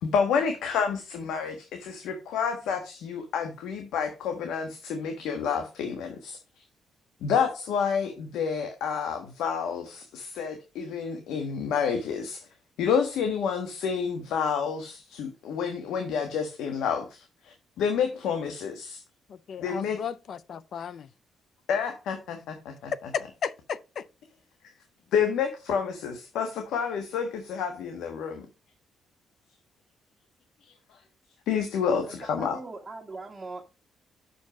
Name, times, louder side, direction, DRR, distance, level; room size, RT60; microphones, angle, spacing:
voice 1, 0.0-6.4 7.2-12.5 12.8-17.2 17.4-19.0 19.6-20.0 21.7-22.9 25.1-28.5 31.5-32.6, left 6 dB, 85° left, 1.2 m, -29 dB
voice 2, 19.5-21.1 23.1-24.0, left 7 dB, 60° left, 0.4 m, -34 dB
voice 3, 32.0-33.6, right 3 dB, 25° right, 1.5 m, -40 dB
6.5 x 5.3 x 5.1 m
cardioid pair, 90°, 0 cm